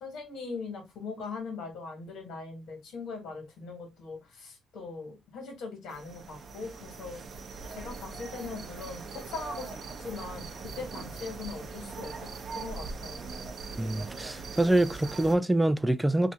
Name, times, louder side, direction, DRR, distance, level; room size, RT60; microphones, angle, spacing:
voice 1, 0.0-7.2 7.7-12.3 12.5-13.2, left 4 dB, 80° left, 1.5 m, -40 dB
sound 1, 5.9-15.4, right 4 dB, 55° right, 0.6 m, -41 dB
voice 2, 13.8-16.3, right 1 dB, 5° right, 0.3 m, -25 dB
2.7 x 2.5 x 3.4 m
cardioid pair, 90°, 0 cm